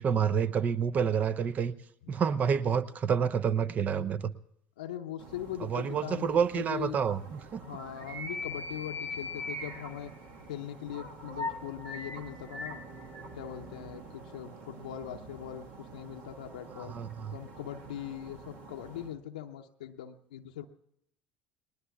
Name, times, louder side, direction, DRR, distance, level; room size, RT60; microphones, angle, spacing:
voice 1, 0.0-1.7 2.1-4.3 5.6-7.6 16.8-17.4, right 7 dB, 35° right, 14 dB, 0.8 m, -28 dB
voice 2, 4.8-7.0 7.6-10.1 10.5-12.8 13.3-16.9 17.3-20.7, left 11 dB, 70° left, 3 dB, 0.8 m, -41 dB
sound 1, 5.2-19.1, left 1 dB, 55° right, 1.6 m, -43 dB
29.5 x 20.5 x 2.4 m, 0.74 s
figure-of-eight pair, 65°, 4 cm